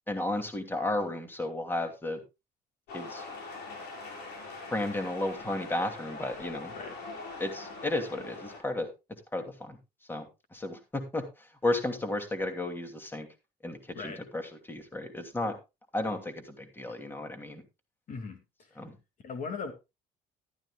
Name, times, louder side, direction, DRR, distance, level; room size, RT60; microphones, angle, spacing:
voice 1, 0.1-2.2 2.9-3.2 4.7-6.7 7.4-8.9 9.3-9.8 10.1-13.3 13.6-14.4 14.7-15.6 15.9-17.6 18.8-19.0, left 2 dB, 10° left, 2.7 m, -33 dB
sound 1, 2.9-8.6, left 3 dB, 80° left, 5.7 m, -43 dB
voice 2, 13.9-14.2 18.1-18.8 19.2-19.7, left 4 dB, 50° left, 2.4 m, -39 dB
14.0 x 13.0 x 2.4 m
cardioid pair, 110°, 17 cm